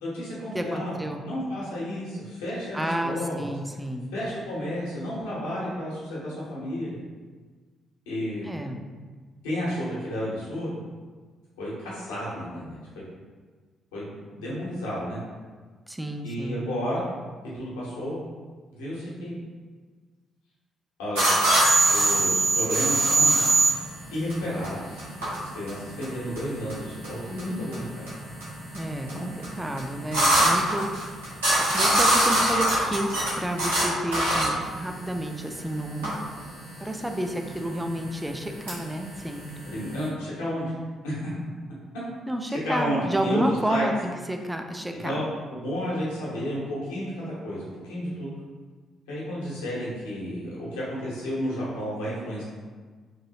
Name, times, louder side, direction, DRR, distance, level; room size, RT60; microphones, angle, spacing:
voice 1, 0.0-0.9 1.2-3.5 4.1-7.0 8.1-8.5 9.4-10.8 11.6-12.8 13.9-15.2 16.2-17.0 17.5-18.2 18.7-19.4 21.0-21.5 21.9-23.5 24.1-25.0 25.4-28.1 29.1-29.3 39.7-40.8 41.0-41.3 42.5-43.9 45.0-48.3 49.1-52.4, equal, 75° left, -7 dB, 0.8 m, -31 dB
voice 2, 0.5-1.2 2.7-4.1 8.4-8.8 15.9-16.6 28.7-31.1 31.6-33.1 33.3-36.2 36.8-39.6 42.3-45.3, right 1 dB, 10° right, 4 dB, 0.3 m, -31 dB
sound 1, 21.2-40.1, right 2 dB, 80° right, 0.9 m, -24 dB
3.0 x 2.6 x 2.7 m, 1.5 s
figure-of-eight pair, 40°, 0 cm